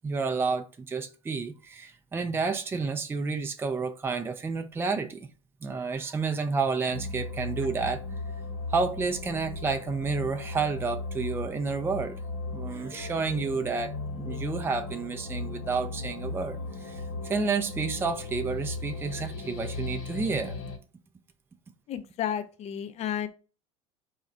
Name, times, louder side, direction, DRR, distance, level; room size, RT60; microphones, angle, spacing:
voice 1, 0.0-5.3 5.6-8.0 8.7-12.2 12.5-20.6, right 4 dB, 15° right, 0.4 m, -30 dB
sound 1, 6.9-20.8, left 3 dB, 70° left, 1.0 m, -37 dB
voice 2, 21.9-23.3, left 9 dB, 40° left, 0.6 m, -32 dB
4.3 x 2.4 x 4.1 m
hypercardioid pair, 75°, 17 cm